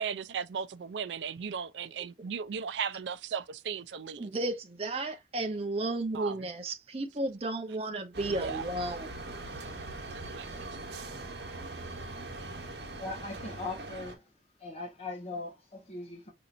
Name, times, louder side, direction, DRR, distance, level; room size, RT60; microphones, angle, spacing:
voice 1, 0.0-4.3 6.1-6.5 8.3-8.6 10.3-10.5 10.9-11.0, right 7 dB, 85° right, 0.4 m, -36 dB
voice 2, 4.2-9.1, right 2 dB, 35° right, 0.7 m, -33 dB
sound 1, 8.1-14.1, right 2 dB, 70° right, 1.2 m, -41 dB
voice 3, 13.0-14.3 14.6-16.3, left 3 dB, 35° left, 1.2 m, -40 dB
5.1 x 2.8 x 2.5 m
head